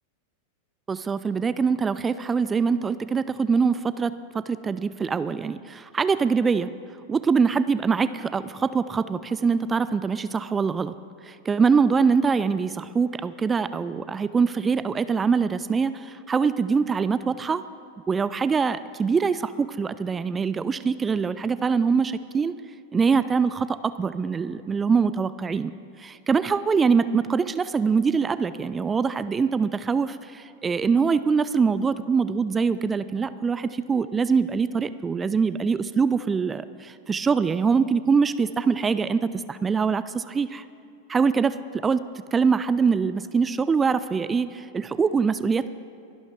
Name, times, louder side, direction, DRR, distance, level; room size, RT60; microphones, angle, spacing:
voice 1, 0.9-6.7 7.1-10.9 11.2-17.6 18.1-22.5 22.9-25.7 26.0-40.6 41.1-42.0 42.3-45.7, right 5 dB, 15° right, 15 dB, 0.3 m, -23 dB
22.5 x 11.5 x 3.4 m, 2.5 s
figure-of-eight pair, 90°, 0 cm